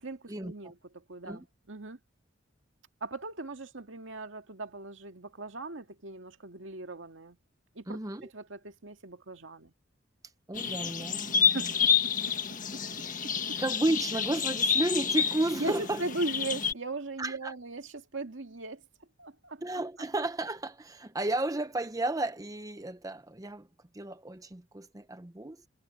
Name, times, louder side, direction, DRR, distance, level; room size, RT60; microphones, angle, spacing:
voice 1, 0.0-2.0 3.0-7.4 7.8-9.7 11.5-12.8 13.5-13.6 15.6-18.8 19.2-19.6, right 2 dB, 80° right, 2.1 m, -39 dB
voice 2, 7.9-8.3 10.5-11.6 13.0-13.2 13.6-16.0 17.2-17.5 19.6-23.7 23.9-25.6, right 2 dB, 20° right, 0.8 m, -33 dB
sound 1, 10.5-16.7, left 7 dB, 45° left, 1.6 m, -29 dB
head